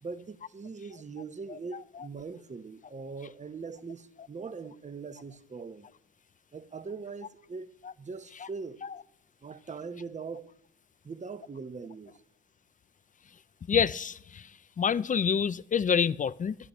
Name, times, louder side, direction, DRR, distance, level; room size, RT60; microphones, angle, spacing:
voice 1, 0.0-5.9 6.5-7.7 8.0-8.8 9.4-10.5 11.0-12.2, right 4 dB, 25° right, 0.9 m, -41 dB
voice 2, 13.7-14.5 14.8-16.6, left 7 dB, 25° left, 0.4 m, -27 dB
25.5 x 10.5 x 3.0 m
cardioid pair, 90°, 30 cm